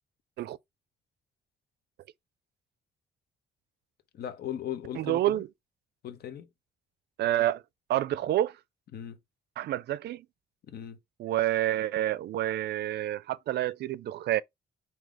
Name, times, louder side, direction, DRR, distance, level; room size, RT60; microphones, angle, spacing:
voice 1, 4.1-5.4 6.0-6.5 8.9-9.2 10.7-11.0, left 10 dB, 60° left, 0.8 m, -38 dB
voice 2, 5.0-5.5 7.2-7.6 7.9-8.6 9.6-10.2 11.2-14.4, right 13 dB, 70° right, 0.4 m, -28 dB
4.8 x 2.8 x 3.7 m
cardioid pair, 160°, 18 cm